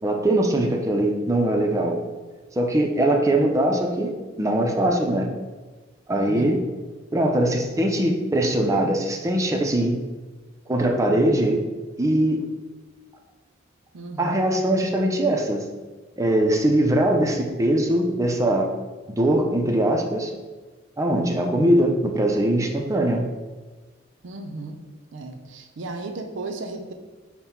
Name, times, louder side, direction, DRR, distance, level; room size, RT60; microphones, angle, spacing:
voice 1, 0.0-2.0 2.6-4.1 4.4-5.3 6.1-6.6 7.1-10.0 10.7-11.6 12.0-12.4 14.2-15.7 16.2-18.7 19.2-20.3 21.0-23.2, right 1 dB, 15° right, 2 dB, 0.5 m, -21 dB
voice 2, 6.3-6.7 7.3-7.7 13.9-14.5 24.2-24.8 25.1-26.9, right 2 dB, 75° right, 6 dB, 0.5 m, -35 dB
5.5 x 2.1 x 4.4 m, 1.3 s
head